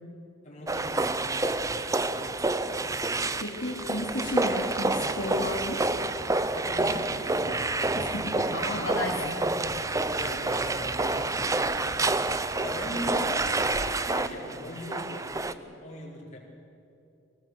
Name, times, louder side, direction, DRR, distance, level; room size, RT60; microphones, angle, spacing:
voice 1, 0.4-3.4 6.5-11.4 11.9-16.4, left 1 dB, 35° left, -3 dB, 4.7 m, -41 dB
sound 1, 0.7-15.5, right 2 dB, 15° right, 0.5 m, -28 dB
voice 2, 3.4-5.9 8.0-9.3, left 2 dB, 60° left, -4 dB, 2.7 m, -33 dB
22.5 x 18.5 x 7.8 m, 2.7 s
head